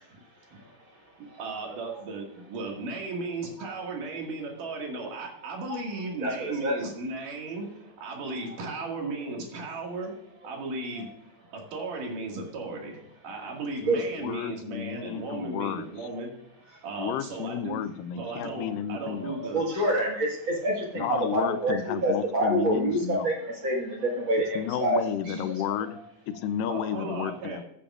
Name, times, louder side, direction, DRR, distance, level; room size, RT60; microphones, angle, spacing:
voice 1, 1.2-10.1 10.4-11.1 11.5-16.3 16.8-17.8 18.2-19.6 26.7-27.6, right 3 dB, 70° right, 0 dB, 3.6 m, -36 dB
voice 2, 6.2-6.8 13.9-14.0 18.5-18.7 19.2-21.8 22.0-25.4, right 1 dB, 45° right, -1 dB, 2.1 m, -27 dB
voice 3, 14.2-16.1 17.0-19.4 20.9-23.3 24.5-26.0 26.3-27.6, left 9 dB, 85° left, 11 dB, 2.3 m, -32 dB
15.5 x 8.5 x 2.5 m, 0.78 s
omnidirectional pair, 3.8 m